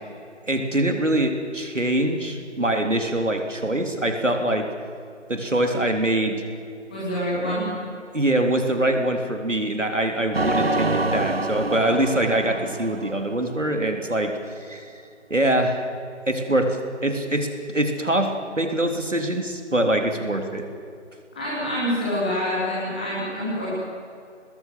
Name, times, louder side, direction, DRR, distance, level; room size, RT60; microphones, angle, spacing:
voice 1, 0.5-4.7 5.3-6.4 8.1-15.0 15.3-15.8 16.3-20.7, right 1 dB, 80° right, 4 dB, 3.5 m, -24 dB
voice 2, 6.9-7.6 21.3-23.7, equal, 5° left, -8 dB, 2.8 m, -26 dB
sound 1, 10.3-13.8, right 2 dB, 55° right, 1.3 m, -26 dB
22.5 x 20.5 x 7.7 m, 2.5 s
figure-of-eight pair, 170°, 37 cm